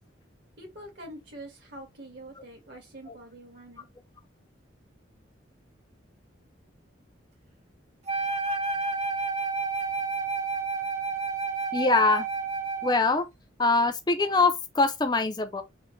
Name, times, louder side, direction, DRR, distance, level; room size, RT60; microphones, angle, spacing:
voice 1, 0.6-3.9, right 1 dB, 65° right, 1.9 m, -45 dB
Wind instrument woodwind instrument, 8.1-13.1, right 4 dB, 35° right, 1.1 m, -30 dB
voice 2, 11.7-12.2 12.8-13.3 13.6-15.6, left 3 dB, 20° left, 0.4 m, -23 dB
4.2 x 2.1 x 3.8 m
head